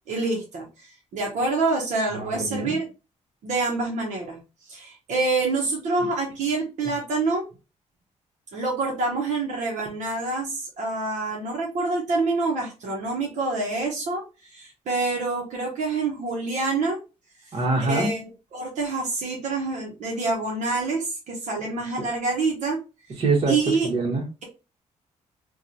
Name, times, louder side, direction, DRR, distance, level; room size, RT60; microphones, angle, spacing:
voice 1, 0.1-2.8 3.4-4.4 4.7-7.4 8.5-17.0 17.9-22.8 23.5-23.9, right 3 dB, 75° right, -1 dB, 0.8 m, -27 dB
voice 2, 2.1-2.8 17.5-18.1 23.2-23.5 23.8-24.2, right 3 dB, 45° right, -1 dB, 1.1 m, -24 dB
2.9 x 2.3 x 2.6 m, 0.30 s
cardioid pair, 135°, 13 cm